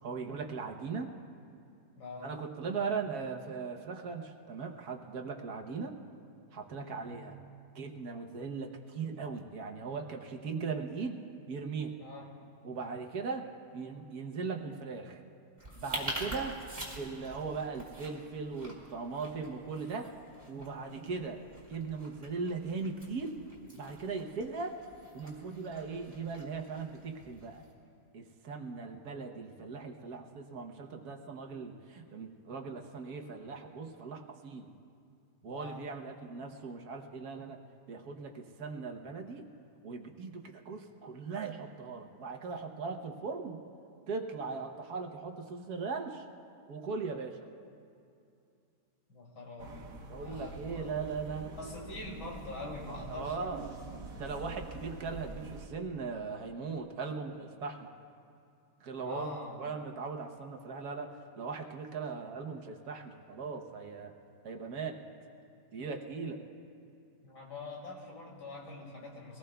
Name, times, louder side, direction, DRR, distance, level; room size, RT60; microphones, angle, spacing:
voice 1, 0.0-1.1 2.2-6.0 6.5-7.4 7.7-12.0 12.6-15.2 15.7-16.6 17.0-20.1 20.5-21.4 21.7-23.4 23.7-24.8 25.1-27.6 28.1-34.7 35.4-37.6 37.9-39.5 39.8-43.6 44.1-46.3 46.7-47.4 50.1-51.5 52.9-53.7 54.2-57.9 58.8-59.3 59.6-64.1 64.4-65.0 65.7-66.4, right 4 dB, 65° right, 3 dB, 1.4 m, -39 dB
voice 2, 2.0-2.4 6.8-7.2 12.0-12.4 35.4-35.9 49.1-51.0 51.6-53.7 59.0-59.7 67.2-69.4, left 2 dB, 90° left, -2 dB, 3.0 m, -45 dB
sound 1, 15.6-27.7, right 1 dB, 25° right, 3.3 m, -46 dB
sound 2, 49.6-55.7, right 3 dB, 85° right, 1.7 m, -46 dB
24.0 x 18.5 x 2.3 m, 2.5 s
omnidirectional pair, 1.8 m